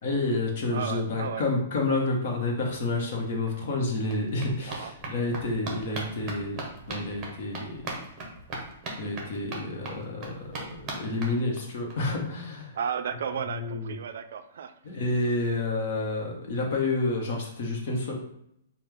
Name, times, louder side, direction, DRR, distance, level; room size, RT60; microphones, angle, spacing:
voice 1, 0.0-6.6 6.9-7.8 9.0-12.8 13.6-14.0 14.8-18.1, left 2 dB, 50° left, 0 dB, 1.1 m, -29 dB
voice 2, 0.7-1.4 4.7-4.9 12.7-15.0, right 7 dB, 70° right, 9 dB, 0.3 m, -34 dB
sound 1, 3.1-3.2 3.5-11.9 12.3-12.4 12.6-12.7 13.0-13.1, right 2 dB, 20° right, 0.9 m, -40 dB
5.1 x 2.3 x 3.5 m, 0.75 s
hypercardioid pair, 160°, 0 cm